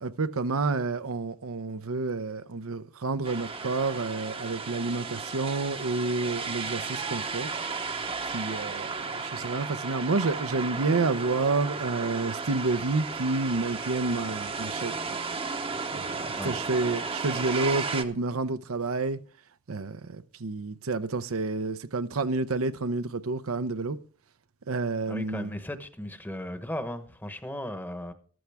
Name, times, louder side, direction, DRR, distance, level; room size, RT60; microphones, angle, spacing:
voice 1, 0.0-7.5 8.3-15.2 15.9-19.2 19.7-24.0 24.7-25.5, right 3 dB, 70° right, 0.7 m, -29 dB
sound 1, 3.2-18.0, right 4 dB, 25° right, 0.9 m, -34 dB
voice 2, 25.1-28.1, left 1 dB, 10° left, 1.1 m, -36 dB
14.0 x 13.0 x 3.5 m
head